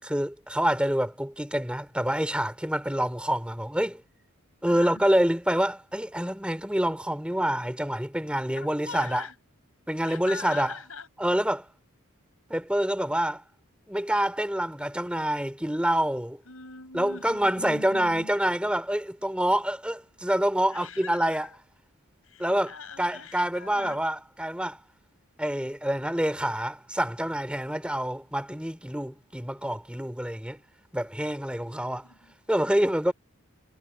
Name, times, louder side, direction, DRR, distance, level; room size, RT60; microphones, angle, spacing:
voice 1, 0.0-4.0 4.6-9.2 9.9-10.7 11.2-11.7 12.5-13.4 13.9-16.4 16.9-21.5 22.4-24.8 25.4-30.6 30.9-32.1 32.5-33.1, right 1 dB, 5° right, 3.2 m, -27 dB
voice 2, 4.6-5.2 8.5-9.4 10.0-11.1 16.5-18.3 20.7-21.6 22.2-24.0 31.5-31.8 32.0-32.3, left 4 dB, 80° left, 7.0 m, -42 dB
head